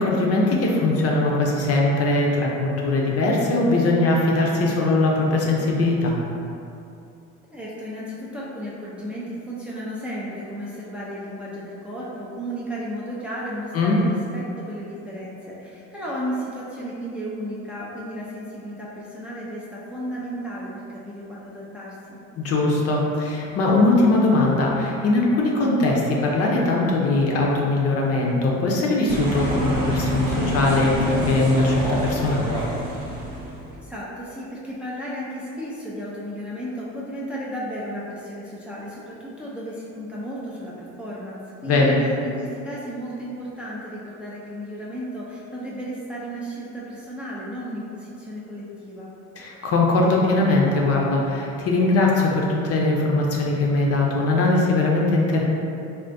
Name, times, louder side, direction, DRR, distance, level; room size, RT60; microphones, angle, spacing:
voice 1, 0.0-6.2 13.7-14.0 22.4-32.6 41.6-42.0 49.4-55.4, left 2 dB, 50° left, -2 dB, 0.6 m, -20 dB
voice 2, 7.5-22.2 33.7-41.9 42.2-49.1, equal, 5° right, -7 dB, 0.4 m, -34 dB
sound 1, 29.1-33.7, equal, 90° right, 0.9 m, -26 dB
3.4 x 2.4 x 2.5 m, 2.6 s
cardioid pair, 105°, 31 cm